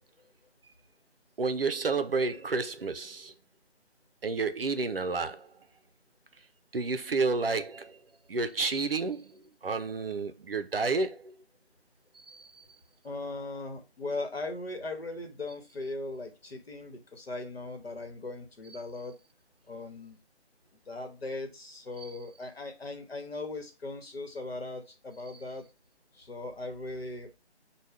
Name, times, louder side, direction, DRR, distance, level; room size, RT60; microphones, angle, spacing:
voice 1, 1.4-3.3 4.2-5.5 6.7-8.0 8.3-11.3 12.1-12.5, right 4 dB, 60° right, 0.6 m, -30 dB
voice 2, 13.0-19.2 19.7-20.2 20.9-25.7 26.1-27.4, left 2 dB, 60° left, 1.2 m, -39 dB
6.2 x 2.3 x 3.4 m
figure-of-eight pair, 155°, 34 cm